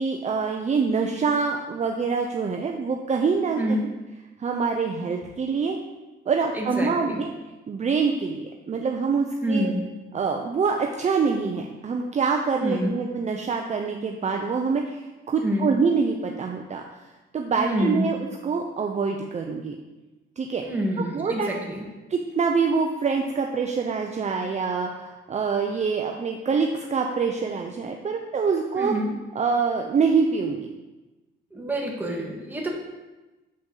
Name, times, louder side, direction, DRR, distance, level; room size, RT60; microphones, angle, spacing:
voice 1, 0.0-3.8 4.4-5.8 6.3-7.3 7.7-9.7 10.1-16.8 17.3-18.2 18.4-19.8 20.4-20.6 21.0-21.5 22.1-28.9 29.3-30.7, right 5 dB, 35° right, 2 dB, 0.6 m, -25 dB
voice 2, 3.6-3.9 6.5-7.2 9.4-9.8 12.6-12.9 15.4-15.7 17.6-18.1 20.6-21.8 28.7-29.1 31.5-32.7, equal, 10° right, -1 dB, 1.5 m, -27 dB
7.0 x 5.1 x 3.9 m, 1.1 s
cardioid pair, 90°, 20 cm